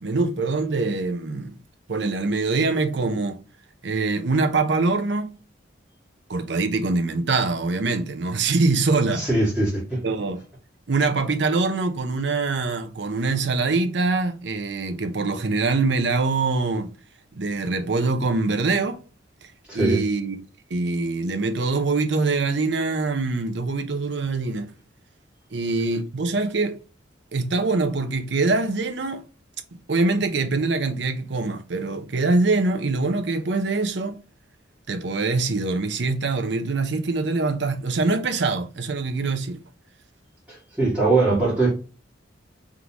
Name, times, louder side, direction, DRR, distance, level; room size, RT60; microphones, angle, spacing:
voice 1, 0.0-1.6 1.9-3.4 3.8-5.3 6.3-9.3 10.0-10.4 10.9-16.9 17.3-19.0 19.7-20.4 20.7-24.7 25.5-26.8 27.3-29.2 29.9-34.2 34.9-39.6, right 3 dB, 65° right, 0.7 m, -24 dB
voice 2, 9.1-10.0 19.7-20.0 40.5-41.7, right 2 dB, 5° right, 2.1 m, -21 dB
3.8 x 3.7 x 2.9 m
head